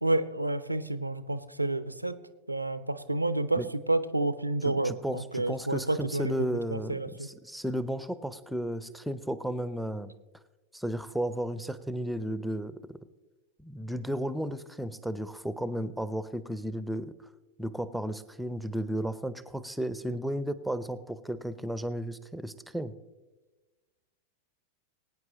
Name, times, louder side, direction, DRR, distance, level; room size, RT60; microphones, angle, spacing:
voice 1, 0.0-2.1 2.5-6.5 6.7-7.3, right 2 dB, 85° right, 13 dB, 0.6 m, -29 dB
voice 2, 4.6-10.1 10.7-13.0 13.6-17.1 17.6-22.9, equal, ahead, 14 dB, 0.6 m, -34 dB
21.5 x 9.4 x 2.9 m, 1.2 s
figure-of-eight pair, 90°, 0 cm